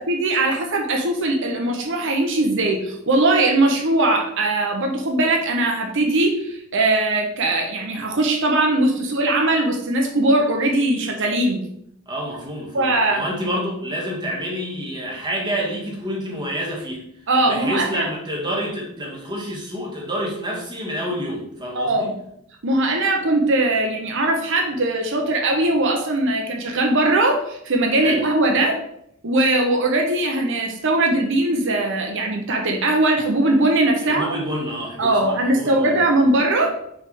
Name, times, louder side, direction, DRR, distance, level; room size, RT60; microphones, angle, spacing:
voice 1, 0.1-11.6 12.7-13.2 17.3-18.1 21.7-22.1 22.6-28.7 29.2-34.3 35.0-36.7, right 2 dB, 60° right, 2 dB, 0.9 m, -20 dB
voice 2, 12.1-22.1 28.0-28.2 34.0-36.1, equal, 20° right, -3 dB, 1.7 m, -28 dB
6.0 x 3.5 x 5.3 m, 0.74 s
head